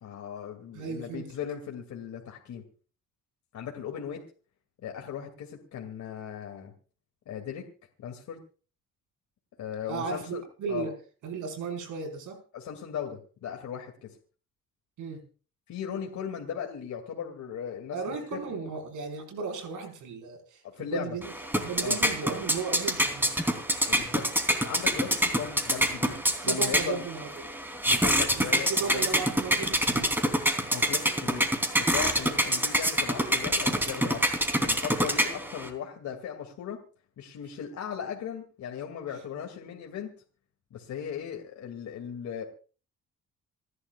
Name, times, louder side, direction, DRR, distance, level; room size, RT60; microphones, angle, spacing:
voice 1, 0.0-2.6 3.5-4.2 4.8-6.7 7.3-7.6 8.0-8.4 9.6-10.4 10.7-10.9 12.5-14.2 15.7-18.0 18.3-18.7 20.6-21.1 21.8-22.0 23.9-24.3 24.6-26.2 26.4-27.0 27.9-29.1 30.7-31.4 31.8-34.3 34.6-36.8 37.2-40.1 40.7-42.4, left 8 dB, 70° left, 2 dB, 2.5 m, -37 dB
voice 2, 0.7-1.3 9.9-10.9 11.2-12.4 15.0-15.2 17.9-21.3 21.6-23.3 26.4-27.4 28.3-30.1, right 5 dB, 80° right, 4 dB, 5.0 m, -35 dB
sound 1, 21.2-35.7, equal, 5° right, 3.3 m, -27 dB
27.5 x 11.5 x 2.4 m, 0.39 s
cardioid pair, 90°, 30 cm